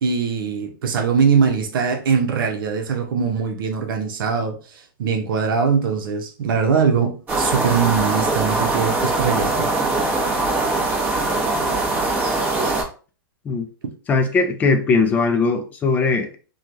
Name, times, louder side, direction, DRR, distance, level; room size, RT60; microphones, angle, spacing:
voice 1, 0.0-4.6 5.0-9.7, right 6 dB, 65° right, 0.8 m, -21 dB
sound 1, 7.3-12.8, right 2 dB, 15° right, 1.0 m, -21 dB
voice 2, 14.1-16.4, left 4 dB, 15° left, 0.3 m, -19 dB
3.1 x 2.3 x 2.6 m
hypercardioid pair, 145°, 12 cm